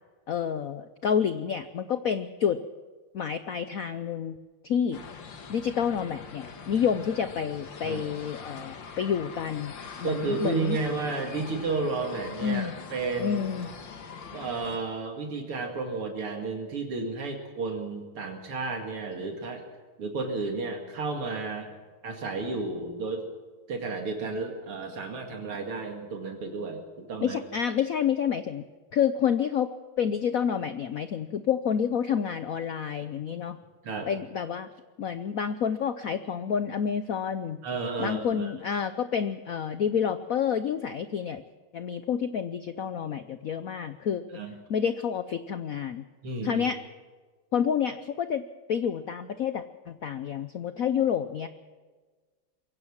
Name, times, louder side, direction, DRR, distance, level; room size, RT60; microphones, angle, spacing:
voice 1, 0.3-2.6 3.1-4.4 4.6-5.0 5.5-9.7 10.0-10.8 12.4-12.7 13.2-13.7 27.2-28.7 28.9-29.7 30.0-33.6 34.1-34.7 35.0-37.6 38.0-41.4 41.7-44.4 44.7-46.0 46.4-46.8 47.5-48.4 48.7-51.5, left 8 dB, 75° left, 11 dB, 0.7 m, -29 dB
sound 1, 4.9-14.8, left 5 dB, 60° left, 2.2 m, -43 dB
voice 2, 7.8-8.2 10.0-13.4 14.3-19.6 20.0-21.7 22.0-23.2 23.7-27.4 33.8-34.1 37.6-38.5 44.3-44.5 46.2-46.6, right 3 dB, 85° right, 2 dB, 3.2 m, -32 dB
22.5 x 16.5 x 7.2 m, 1.4 s
omnidirectional pair, 2.4 m